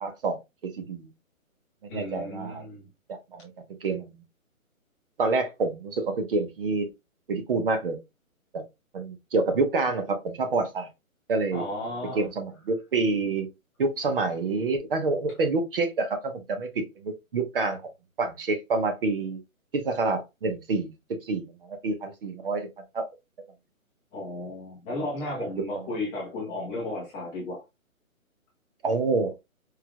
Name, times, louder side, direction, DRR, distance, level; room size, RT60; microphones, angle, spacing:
voice 1, 0.0-1.1 1.8-2.6 3.1-3.5 3.8-4.2 5.2-6.9 7.3-8.0 8.5-8.6 8.9-10.9 11.3-11.6 12.1-13.5 13.8-17.8 18.2-19.4 19.7-20.9 21.2-22.7 22.9-23.1 28.8-29.3, right 3 dB, 40° right, 1.0 m, -27 dB
voice 2, 1.9-2.9 11.5-12.3 24.1-27.6, left 2 dB, 5° left, 0.8 m, -34 dB
4.7 x 3.4 x 2.3 m
hypercardioid pair, 155°, 42 cm